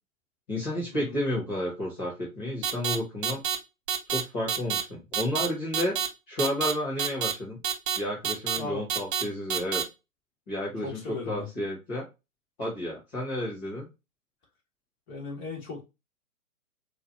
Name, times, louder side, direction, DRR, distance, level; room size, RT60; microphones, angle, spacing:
voice 1, 0.5-3.4 4.1-6.0 6.3-7.6 7.9-9.8 10.5-12.1 12.6-13.9, left 1 dB, 5° left, 0.4 m, -31 dB
sound 1, 2.6-3.0 3.2-3.6 3.9-4.2 4.5-4.8 5.1-5.5 5.7-6.1 6.4-6.7 7.0-7.3 7.6-8.0 8.2-8.6 8.9-9.2 9.5-9.8, right 8 dB, 35° right, 0.7 m, -27 dB
voice 2, 10.8-11.5 15.1-15.8, left 3 dB, 25° left, 1.8 m, -37 dB
4.7 x 2.6 x 2.7 m
figure-of-eight pair, 120°, 43 cm